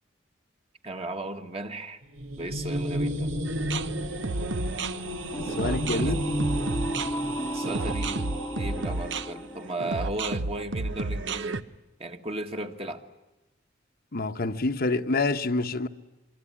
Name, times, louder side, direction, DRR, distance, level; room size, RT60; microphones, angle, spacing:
voice 1, 0.8-2.0 2.4-3.3 5.6-6.2 7.5-8.2 8.5-11.6 12.0-13.0, right 1 dB, 30° right, 1.8 m, -35 dB
sound 1, 2.0-9.0, right 1 dB, 85° right, 2.1 m, -33 dB
sound 2, 3.5-11.6, right 3 dB, 65° right, 0.9 m, -32 dB
sound 3, 5.3-10.6, equal, 15° left, 1.1 m, -34 dB
voice 2, 5.6-6.2 14.1-15.9, left 3 dB, 50° left, 1.0 m, -27 dB
24.5 x 24.0 x 9.9 m
head